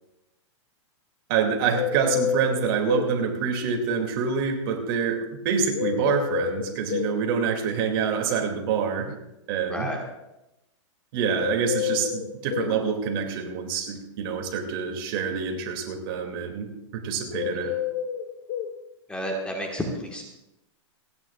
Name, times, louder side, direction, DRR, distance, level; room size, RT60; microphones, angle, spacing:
voice 1, 1.3-9.2 9.5-9.9 11.1-16.7 16.9-17.7, right 6 dB, 45° right, 3 dB, 2.5 m, -26 dB
sound 1, 1.7-3.1 5.7-7.1 11.4-12.8 17.3-18.7, left 9 dB, 40° left, 1.0 m, -28 dB
voice 2, 9.7-10.0 17.5-17.7 19.1-20.2, equal, 5° left, 1 dB, 1.5 m, -31 dB
29.0 x 9.8 x 2.4 m, 0.91 s
hypercardioid pair, 145°, 16 cm